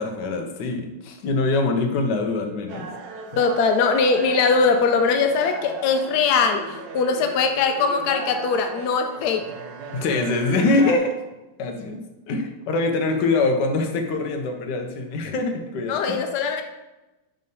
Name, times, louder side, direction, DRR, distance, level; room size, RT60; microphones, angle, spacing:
voice 1, 0.0-2.9 9.9-11.2 11.6-16.0, left 3 dB, 65° left, 4 dB, 1.2 m, -24 dB
sound 1, 2.7-11.0, right 4 dB, 70° right, 1.0 m, -36 dB
voice 2, 3.4-9.5 15.9-16.6, left 5 dB, 85° left, 5 dB, 0.8 m, -21 dB
5.5 x 3.2 x 5.3 m, 1.0 s
omnidirectional pair, 2.3 m